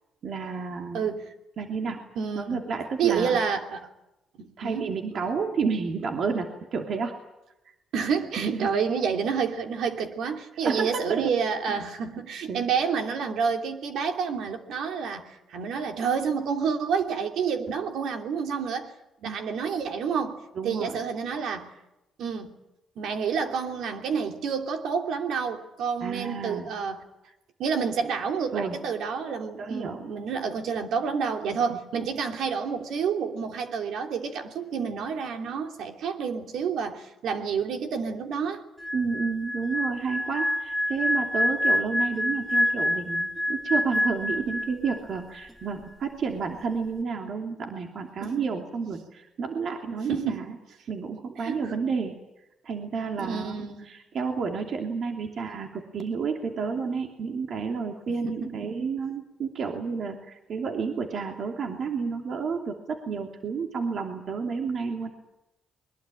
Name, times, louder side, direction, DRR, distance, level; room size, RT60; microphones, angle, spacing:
voice 1, 0.2-1.0 1.6-2.0 2.3-3.4 4.6-7.2 8.4-8.7 10.6-11.3 11.7-11.8 12.1-12.2 12.5-12.6 19.2-19.4 20.6-21.0 26.0-26.7 28.5-28.8 29.6-30.0 31.7-31.8 38.9-50.5 50.9-52.2 52.6-65.1, right 5 dB, 60° right, 3 dB, 2.8 m, -30 dB
voice 2, 1.8-2.6 3.0-3.9 4.4-4.9 7.9-18.9 19.2-21.7 22.2-22.5 23.0-27.0 27.6-38.6 48.2-48.3 50.1-50.4 51.4-51.7 53.2-53.9 58.2-58.5, right 6 dB, 75° right, 4 dB, 3.0 m, -29 dB
sound 1, 38.8-45.2 45.4-45.7, left 1 dB, ahead, 2.2 m, -27 dB
22.5 x 21.5 x 9.0 m, 0.94 s
cardioid pair, 90°, 0 cm